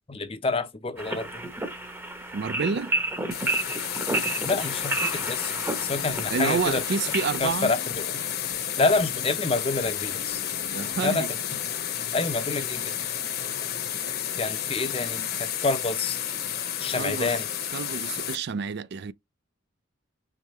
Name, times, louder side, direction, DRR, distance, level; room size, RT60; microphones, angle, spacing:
voice 1, 0.1-1.4 4.5-5.5 5.8-6.8 7.4-8.3 8.8-10.4 11.0-11.6 12.1-13.0 14.4-16.2 16.8-17.5, left 3 dB, 25° left, 0.6 m, -28 dB
sound 1, 1.0-7.4, right 2 dB, 10° right, 0.8 m, -31 dB
voice 2, 2.3-2.9 6.3-7.7 10.7-11.3 16.9-17.4 17.7-19.1, right 5 dB, 50° right, 0.4 m, -29 dB
sound 2, 3.3-18.4, left 10 dB, 45° left, 0.9 m, -31 dB
sound 3, 5.8-11.0, left 3 dB, 80° left, 0.8 m, -47 dB
4.9 x 3.3 x 3.0 m
head